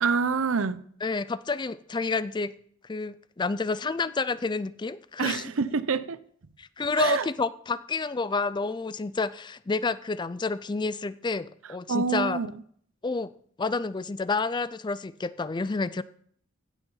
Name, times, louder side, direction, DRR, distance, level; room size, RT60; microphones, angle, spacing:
voice 1, 0.0-0.8 5.2-6.2 7.0-7.3 11.9-12.5, right 5 dB, 80° right, 0.7 m, -26 dB
voice 2, 1.0-2.5 2.9-5.5 6.6-12.4 13.0-13.3 13.6-16.0, left 4 dB, 20° left, 0.4 m, -29 dB
16.0 x 8.1 x 5.6 m
head